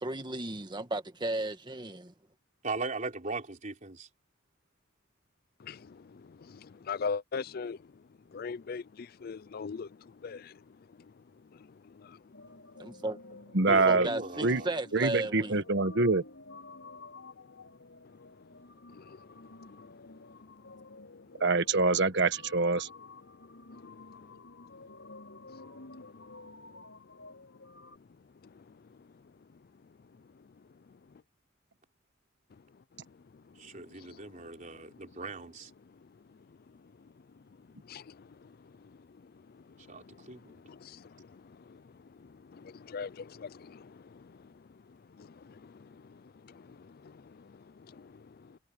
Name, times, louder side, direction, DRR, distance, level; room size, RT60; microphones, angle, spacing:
voice 1, 0.0-2.1 12.8-13.4 13.7-15.6, right 2 dB, 25° right, 1.7 m, -35 dB
voice 2, 2.6-4.1 13.6-14.7 33.6-35.7 39.9-40.6, right 3 dB, 40° right, 3.6 m, -39 dB
voice 3, 5.6-7.8 8.3-10.6 11.8-12.2 18.9-19.4 19.7-20.2 23.7-24.0 25.5-26.3 28.5-28.6 34.1-34.4 37.8-38.9 39.9-41.8 42.2-44.5 45.2-48.6, left 5 dB, 50° left, 0.4 m, -43 dB
sound 1, 12.3-28.0, left 3 dB, 85° left, 5.9 m, -51 dB
voice 4, 13.5-14.1 14.4-14.6 14.9-16.2 21.4-22.9, right 3 dB, 60° right, 1.3 m, -25 dB
head